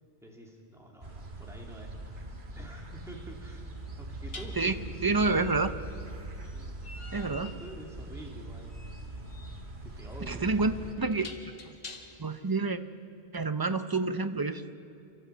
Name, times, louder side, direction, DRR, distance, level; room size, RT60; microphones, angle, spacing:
voice 1, 0.2-3.7 4.0-5.6 6.5-6.7 7.4-8.7 9.8-11.1, right 1 dB, 5° right, -1 dB, 2.7 m, -47 dB
sound 1, 1.0-10.9, right 2 dB, 50° right, 1.7 m, -42 dB
sound 2, 1.9-2.0 4.3-12.4, left 3 dB, 65° left, 1.9 m, -49 dB
voice 2, 5.0-5.7 7.1-7.5 10.3-10.7 11.0-11.3 11.7-11.8 12.2-12.8 13.3-14.7, right 3 dB, 25° right, 10 dB, 0.6 m, -28 dB
29.5 x 12.5 x 8.4 m, 2.6 s
omnidirectional pair, 1.1 m